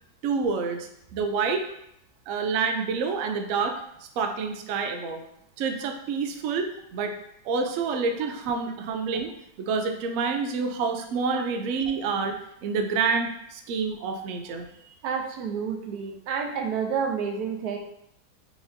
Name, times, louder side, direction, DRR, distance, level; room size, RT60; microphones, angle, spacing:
voice 1, 0.2-1.6 2.3-3.8 4.2-5.2 5.6-7.1 7.4-9.3 9.6-12.3 12.6-15.0, right 5 dB, 85° right, 5 dB, 0.7 m, -28 dB
voice 2, 15.0-17.8, right 6 dB, 70° right, 3 dB, 1.1 m, -29 dB
4.6 x 4.0 x 2.6 m, 0.76 s
omnidirectional pair, 1.9 m